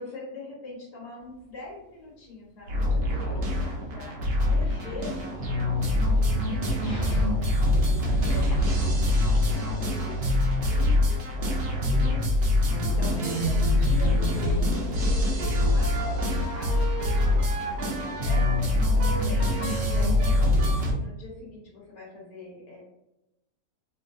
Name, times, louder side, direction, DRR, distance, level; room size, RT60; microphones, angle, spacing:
voice 1, 0.0-7.6 7.9-17.0 17.4-22.8, left 3 dB, 85° left, -5 dB, 1.5 m, -43 dB
Dog, 1.2-20.4, left 1 dB, 50° left, 1.1 m, -45 dB
sound 1, 2.7-20.9, left 1 dB, 55° right, 0.9 m, -24 dB
3.1 x 2.6 x 2.5 m, 0.92 s
omnidirectional pair, 1.7 m